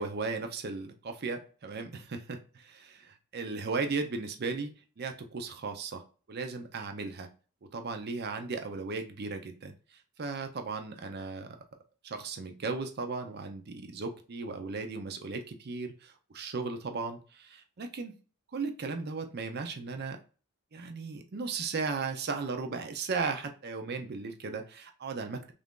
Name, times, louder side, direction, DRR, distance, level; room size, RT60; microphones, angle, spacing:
voice 1, 0.0-6.0 6.3-7.3 7.7-9.7 10.2-11.6 12.0-18.1 18.5-20.2 20.7-25.5, right 4 dB, 45° right, 6 dB, 0.5 m, -36 dB
3.3 x 2.5 x 3.6 m, 0.37 s
head